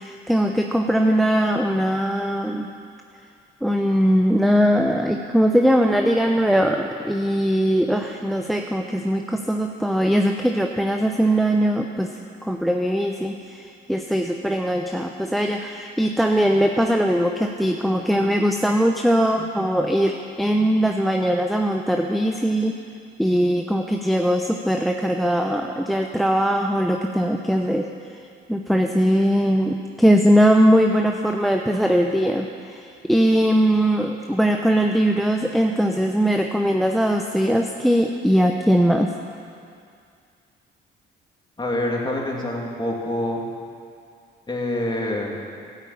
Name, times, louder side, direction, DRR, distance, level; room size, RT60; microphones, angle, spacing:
voice 1, 0.0-2.7 3.6-12.1 12.4-22.7 23.2-27.9 28.5-39.1, equal, ahead, 3 dB, 0.7 m, -20 dB
voice 2, 41.6-43.4 44.5-45.4, left 1 dB, 20° left, -1 dB, 2.7 m, -26 dB
12.5 x 9.0 x 8.6 m, 2.3 s
cardioid pair, 90°, 20 cm